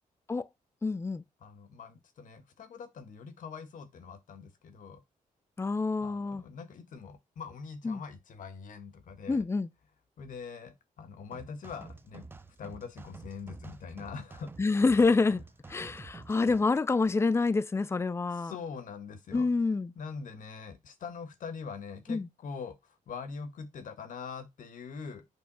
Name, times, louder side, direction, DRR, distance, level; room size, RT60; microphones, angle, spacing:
voice 1, 0.8-1.2 5.6-6.4 7.8-8.0 9.3-9.7 14.6-15.4 15.7-18.5 19.3-19.9 22.1-22.3, left 3 dB, 20° left, 0.5 m, -27 dB
voice 2, 1.4-5.0 6.0-9.4 10.2-12.3 12.6-14.5 18.3-19.5 19.9-25.2, left 5 dB, 65° left, 1.7 m, -43 dB
sound 1, 11.3-16.6, right 3 dB, 15° right, 0.7 m, -49 dB
7.1 x 3.7 x 6.2 m
cardioid pair, 125°, 14 cm